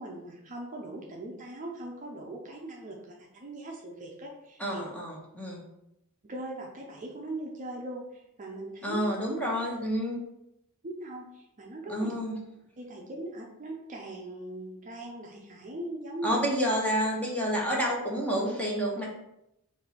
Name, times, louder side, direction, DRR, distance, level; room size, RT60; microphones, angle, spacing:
voice 1, 0.0-4.8 6.2-9.0 10.8-12.1 12.8-16.4, right 1 dB, 35° right, -1 dB, 0.5 m, -40 dB
voice 2, 4.6-5.6 8.8-10.2 11.9-12.3 16.2-19.1, equal, 5° left, -3 dB, 0.9 m, -29 dB
4.3 x 2.6 x 4.1 m, 0.83 s
head